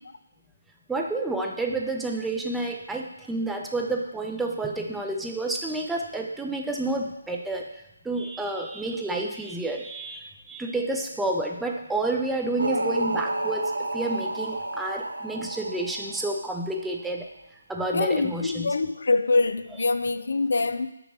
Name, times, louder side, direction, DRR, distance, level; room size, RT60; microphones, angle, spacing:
voice 1, 0.9-7.6 8.0-17.3 17.7-18.7, right 2 dB, 5° right, 0.4 m, -30 dB
sound 1, 12.6-16.8, right 1 dB, 85° right, 0.6 m, -30 dB
voice 2, 17.9-20.9, left 3 dB, 70° left, 0.3 m, -24 dB
6.0 x 3.0 x 5.3 m
figure-of-eight pair, 160°, 0 cm